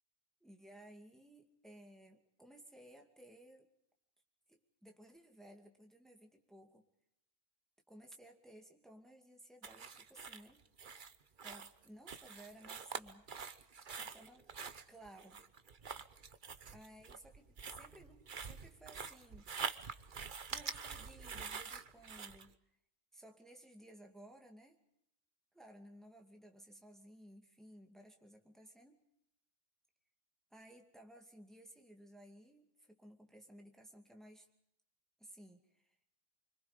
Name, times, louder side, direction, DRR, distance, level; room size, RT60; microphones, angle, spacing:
voice 1, 0.4-3.7 4.5-6.8 7.9-10.7 11.4-13.3 13.9-14.5 14.9-15.4 16.7-19.5 20.5-22.5 23.1-24.8 25.5-29.0 30.5-34.5 35.2-36.0, right 1 dB, ahead, 2 dB, 2.4 m, -58 dB
sound 1, 9.6-22.5, right 6 dB, 40° right, 1.1 m, -46 dB
25.5 x 25.5 x 5.2 m, 0.76 s
omnidirectional pair, 1.3 m